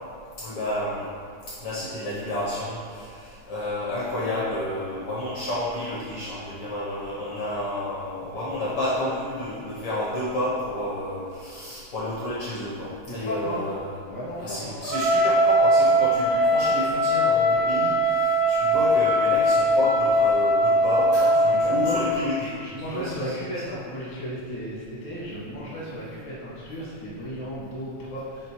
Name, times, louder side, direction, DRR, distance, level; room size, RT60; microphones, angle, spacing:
voice 1, 0.4-1.0 1.5-13.9 14.4-22.5 22.9-23.3, left 1 dB, 70° left, -7 dB, 1.3 m, -30 dB
voice 2, 13.1-13.6 14.0-14.8 21.5-22.0 22.6-28.5, equal, 35° left, -8 dB, 0.5 m, -34 dB
Trumpet, 14.8-22.2, equal, 85° right, 2.2 m, -20 dB
5.7 x 3.6 x 4.5 m, 2.3 s
omnidirectional pair, 3.4 m